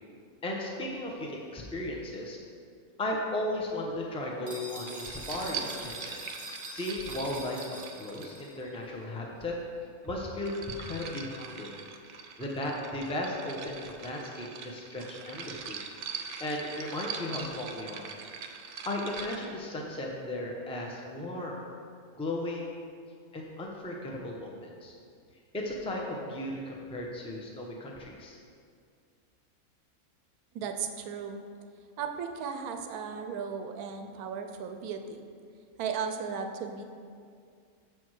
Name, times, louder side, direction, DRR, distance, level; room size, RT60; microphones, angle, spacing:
voice 1, 0.4-2.4 3.0-6.2 6.7-7.6 7.9-9.6 10.0-11.7 12.4-15.8 16.4-18.1 18.5-21.6 22.2-22.8 23.3-24.9 25.5-28.4, left 1 dB, 5° left, -1 dB, 0.6 m, -36 dB
sound 1, 4.5-8.6, right 1 dB, 30° right, 1.0 m, -44 dB
sound 2, 4.9-8.8 10.0-19.5, right 6 dB, 65° right, 0.8 m, -42 dB
voice 2, 30.5-31.4 32.0-35.3 35.8-36.8, right 6 dB, 80° right, 6 dB, 1.1 m, -36 dB
7.1 x 4.6 x 6.2 m, 2.2 s
omnidirectional pair, 1.5 m